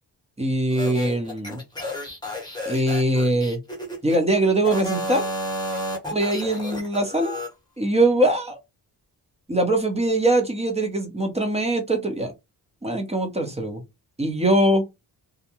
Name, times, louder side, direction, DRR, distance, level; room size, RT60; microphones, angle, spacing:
voice 1, 0.4-1.6 2.7-3.6 4.0-5.2 6.1-7.4 7.8-8.6 9.5-12.3 12.8-13.8 14.2-14.8, right 1 dB, 15° right, 0.9 m, -22 dB
sound 1, 0.7-4.2 4.6-7.5, left 1 dB, 10° left, 1.1 m, -32 dB
2.4 x 2.2 x 2.9 m
cardioid pair, 85°, 43 cm